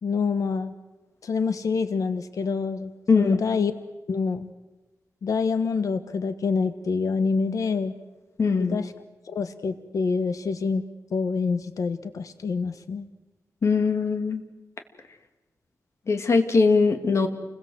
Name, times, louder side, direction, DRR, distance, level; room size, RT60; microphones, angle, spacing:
voice 1, 0.0-0.7 1.2-2.9 3.2-3.7 4.1-4.5 5.2-7.9 8.6-8.9 9.3-10.8 11.1-13.1, left 5 dB, 75° left, 10 dB, 1.4 m, -26 dB
voice 2, 8.4-8.8 13.6-14.4 16.1-17.3, left 4 dB, 55° left, 6 dB, 2.5 m, -21 dB
29.0 x 21.5 x 8.0 m, 1.1 s
wide cardioid pair, 145°, 6 cm